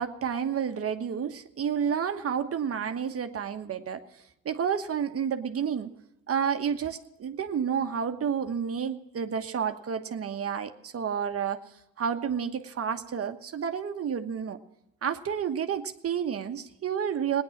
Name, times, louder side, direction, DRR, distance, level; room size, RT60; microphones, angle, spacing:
voice 1, 0.0-4.0 4.4-5.9 6.3-11.6 12.0-14.6 15.0-17.4, right 7 dB, 50° right, 7 dB, 1.3 m, -30 dB
17.5 x 10.0 x 7.2 m, 0.88 s
cardioid pair, 90°, 30 cm